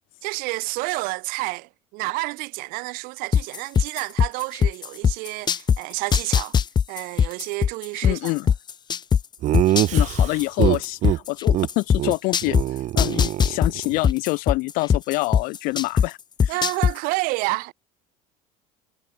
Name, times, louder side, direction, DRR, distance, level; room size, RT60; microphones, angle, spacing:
voice 1, 0.2-6.6 6.9-8.3 16.5-17.7, right 25 dB, 70° right, 2.4 m, -29 dB
sound 1, 3.3-5.8 6.1-9.2 9.5-12.6 13.0-16.1 16.4-16.9, left 7 dB, 30° left, 1.3 m, -19 dB
voice 2, 8.0-8.5 9.9-16.6, left 23 dB, 70° left, 4.6 m, -26 dB
Laughter, 9.4-11.2 11.5-11.7 12.0-12.1 12.4-14.0, right 14 dB, 55° right, 1.6 m, -24 dB
supercardioid pair, 120°, 15 cm